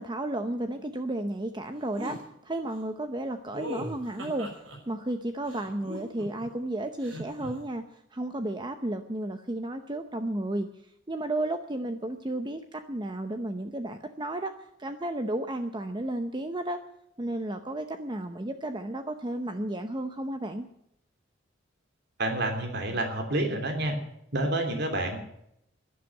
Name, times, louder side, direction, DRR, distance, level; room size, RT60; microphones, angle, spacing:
voice 1, 0.0-4.5 4.9-10.7 11.1-16.8 17.2-20.6, right 1 dB, 25° right, 7 dB, 0.8 m, -33 dB
sound 1, 1.9-2.2 3.5-4.8 5.5-6.5 7.0-7.5, left 1 dB, 85° right, 6.3 m, -39 dB
voice 2, 22.2-24.0 24.3-25.2, right 1 dB, 60° right, 5 dB, 3.0 m, -28 dB
12.5 x 11.0 x 8.9 m, 0.77 s
head